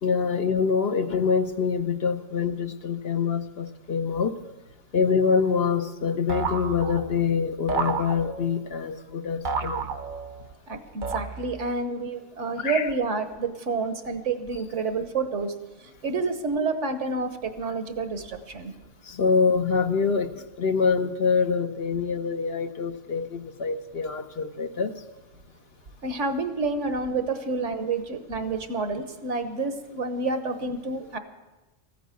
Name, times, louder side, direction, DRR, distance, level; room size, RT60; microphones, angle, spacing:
voice 1, 0.0-4.4 4.9-9.9 12.6-12.9 19.0-20.3 20.6-24.9, left 5 dB, 55° left, 8 dB, 0.9 m, -25 dB
sound 1, 6.3-7.2 7.7-8.6 9.5-10.5 11.0-11.7, right 4 dB, 45° right, 0.9 m, -31 dB
voice 2, 10.7-15.5 16.0-18.7 26.0-31.2, right 3 dB, 70° right, 9 dB, 1.4 m, -29 dB
14.5 x 9.3 x 8.1 m, 1.1 s
omnidirectional pair, 1.3 m